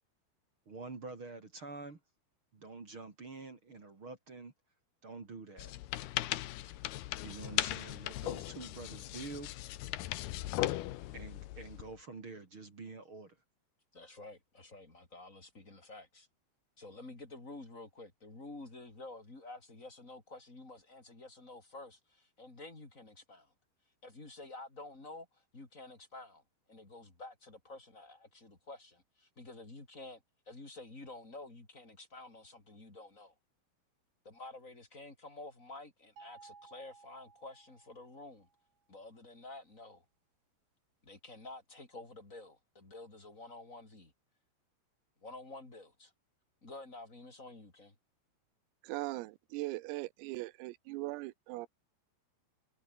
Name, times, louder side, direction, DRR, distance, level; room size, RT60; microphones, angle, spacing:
voice 1, 0.7-2.0 2.5-4.5 5.0-5.7 7.2-9.5 11.1-13.4, right 3 dB, 30° right, 2.9 m, -47 dB
sound 1, 5.6-11.9, left 15 dB, 70° left, 2.5 m, -38 dB
voice 2, 13.9-16.3 16.8-23.5 24.0-26.4 26.7-33.3 34.2-38.5 38.9-40.0 41.0-44.1 45.2-46.1 46.6-47.9, left 2 dB, 15° left, 4.4 m, -50 dB
sound 2, 36.2-38.4, right 5 dB, 45° right, 7.5 m, -57 dB
voice 3, 48.8-51.7, right 20 dB, 90° right, 3.6 m, -40 dB
omnidirectional pair, 5.9 m